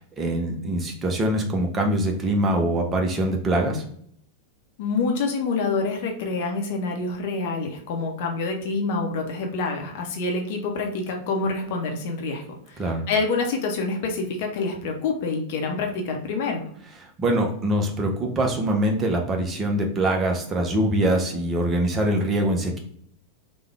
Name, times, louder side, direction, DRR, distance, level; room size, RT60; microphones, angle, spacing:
voice 1, 0.0-3.8 12.8-13.0 17.2-22.8, right 1 dB, 20° right, 2 dB, 0.7 m, -23 dB
voice 2, 4.8-16.6, left 3 dB, 50° left, 2 dB, 0.7 m, -27 dB
3.4 x 2.2 x 3.3 m, 0.64 s
figure-of-eight pair, 90°, 0 cm